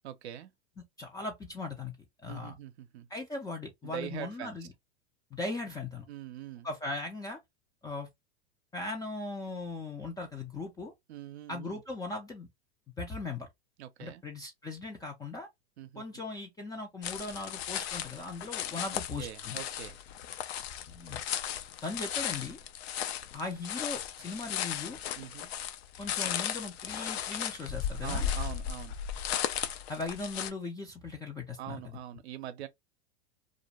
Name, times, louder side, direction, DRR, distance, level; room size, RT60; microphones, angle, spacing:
voice 1, 0.0-0.5 2.3-3.1 3.8-4.7 6.1-6.7 11.1-11.8 13.8-14.2 15.8-16.0 19.2-20.0 25.2-25.5 28.0-28.9 31.6-32.7, right 12 dB, 70° right, 0.6 m, -43 dB
voice 2, 1.0-1.9 2.2-2.5 3.1-4.7 5.3-6.1 6.6-7.4 7.8-8.1 8.7-10.9 11.5-12.5 13.0-13.5 14.0-15.5 16.0-19.6 20.9-21.2 21.8-22.6 23.3-25.0 26.0-28.2 29.9-31.8, left 3 dB, 10° left, 0.4 m, -38 dB
sound 1, 17.0-30.5, left 9 dB, 65° left, 0.5 m, -36 dB
2.5 x 2.2 x 2.8 m
hypercardioid pair, 110°, 34 cm